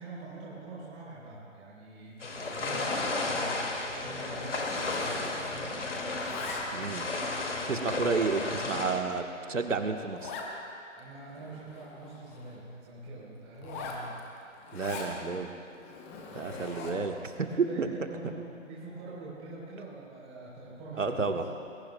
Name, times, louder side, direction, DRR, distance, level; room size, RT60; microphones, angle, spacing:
voice 1, 0.0-3.7 3.9-5.2 5.5-5.9 11.0-14.2 16.1-17.0 17.4-21.4, right 2 dB, 15° right, -6 dB, 3.6 m, -44 dB
sound 1, 2.2-9.0, left 2 dB, 65° left, 2.3 m, -33 dB
Zipper (clothing), 2.2-3.2 3.5-3.8 4.0-5.7 6.0-7.0 7.6-7.7 8.3-8.4 8.8-8.9 9.1-9.2 9.5-9.6 10.2-10.5 11.0-11.1 11.3-12.6 13.5-15.2 15.7-17.1, left 4 dB, 10° left, 0.8 m, -43 dB
voice 2, 6.7-7.1 7.7-9.2 9.5-10.4 14.7-15.5 16.3-17.5 17.8-17.9 21.0-21.4, right 4 dB, 75° right, 5 dB, 1.4 m, -31 dB
27.0 x 21.5 x 2.3 m, 2.5 s
figure-of-eight pair, 140°, 39 cm